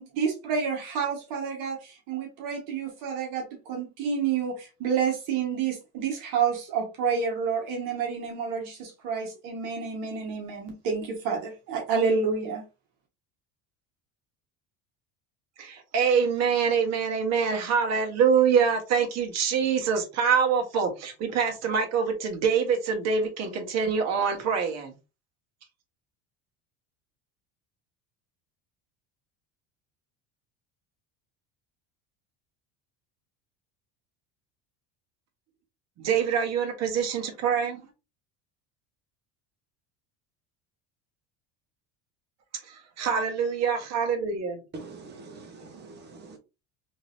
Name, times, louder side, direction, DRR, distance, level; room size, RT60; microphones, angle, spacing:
voice 1, 0.0-12.6, right 6 dB, 60° right, 1.5 m, -29 dB
voice 2, 15.6-24.9 36.0-37.8 43.0-44.6, right 6 dB, 45° right, 1.3 m, -25 dB
voice 3, 44.7-46.4, right 3 dB, 30° right, 1.0 m, -44 dB
3.8 x 3.1 x 2.6 m
cardioid pair, 145°, 36 cm